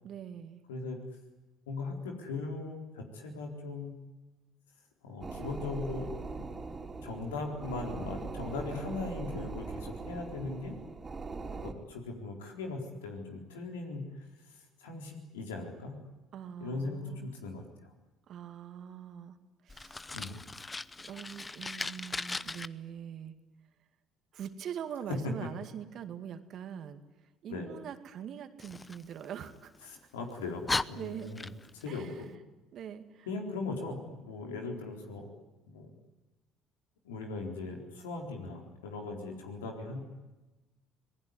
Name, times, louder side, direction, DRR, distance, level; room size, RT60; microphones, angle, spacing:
voice 1, 0.0-0.6 16.3-17.3 18.3-19.4 19.6-20.2 21.1-23.4 24.3-27.0 27.4-29.7 31.0-31.3 31.9-32.3 32.7-33.3, right 9 dB, 55° right, 9 dB, 2.2 m, -43 dB
voice 2, 1.7-4.0 5.0-6.5 7.0-10.8 11.6-16.0 16.6-17.9 20.1-20.4 25.2-25.3 27.5-27.7 29.9-31.5 31.7-32.3 33.3-35.3 35.6-35.9 37.0-40.0, left 3 dB, 85° left, 2 dB, 4.2 m, -39 dB
sound 1, 5.2-11.7, right 4 dB, 30° right, 3.7 m, -41 dB
Fire, 19.7-22.7 28.6-29.8 30.3-30.4 30.7-31.9, left 3 dB, 20° left, 0.8 m, -38 dB
26.5 x 19.5 x 9.8 m, 1.1 s
hypercardioid pair, 60°, 0 cm